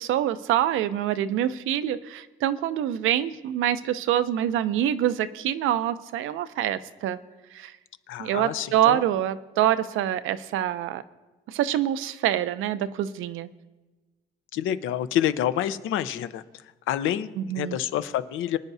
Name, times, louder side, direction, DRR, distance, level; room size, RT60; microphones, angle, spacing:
voice 1, 0.0-7.2 7.5-7.7 8.2-11.0 11.5-13.5 17.4-17.8, right 11 dB, 90° right, 13 dB, 0.6 m, -25 dB
voice 2, 8.1-9.0 14.5-16.4 16.9-17.3 17.6-18.6, left 11 dB, 85° left, 12 dB, 0.7 m, -27 dB
24.0 x 9.6 x 2.7 m, 1.2 s
cardioid pair, 90°, 20 cm